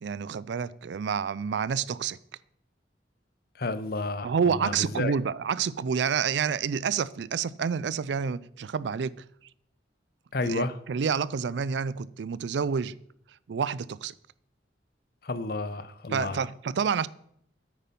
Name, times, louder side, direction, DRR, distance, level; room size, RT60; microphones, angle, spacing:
voice 1, 0.0-2.2 4.2-9.1 10.4-12.9 13.5-14.1 16.1-17.1, right 6 dB, 70° right, 0.4 m, -28 dB
voice 2, 3.6-5.1 10.3-10.8 15.2-16.5, left 3 dB, 55° left, 0.7 m, -31 dB
9.4 x 8.5 x 5.4 m
head